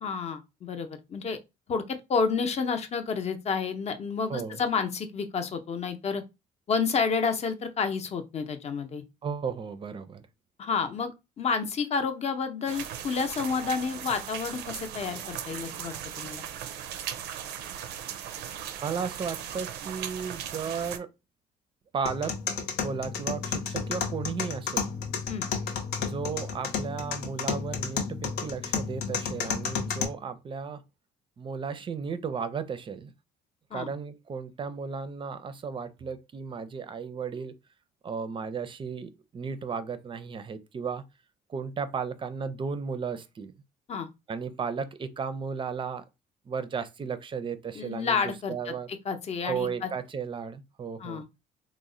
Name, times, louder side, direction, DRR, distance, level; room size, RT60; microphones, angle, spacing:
voice 1, 0.0-1.4 1.7-6.2 6.7-9.0 10.6-11.1 11.4-16.5 25.3-25.4 33.7-33.9 43.9-44.1 47.8-49.9 51.0-51.2, left 5 dB, 40° left, 0.6 m, -30 dB
voice 2, 4.3-4.6 9.2-10.2 18.8-21.1 21.9-22.4 22.8-24.9 26.0-30.8 31.4-33.1 33.7-37.5 38.0-41.0 41.5-43.5 44.3-46.0 46.5-48.9 49.4-51.2, right 6 dB, 30° right, 0.5 m, -34 dB
sound 1, 12.7-21.0, right 9 dB, 80° right, 0.5 m, -38 dB
sound 2, 22.1-30.0, left 6 dB, 75° left, 0.8 m, -32 dB
3.0 x 2.1 x 3.7 m
cardioid pair, 110°, 17 cm